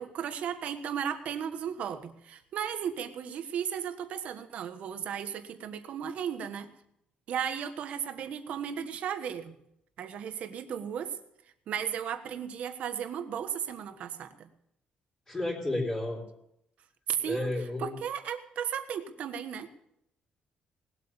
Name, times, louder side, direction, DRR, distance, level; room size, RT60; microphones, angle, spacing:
voice 1, 0.0-6.7 7.3-9.6 10.0-11.2 11.7-14.5 17.1-17.5 17.8-19.7, right 8 dB, 60° right, 9 dB, 1.3 m, -35 dB
voice 2, 15.3-16.2 17.2-17.9, left 2 dB, 20° left, -4 dB, 3.7 m, -31 dB
19.0 x 8.1 x 7.0 m, 0.79 s
cardioid pair, 155°, 3 cm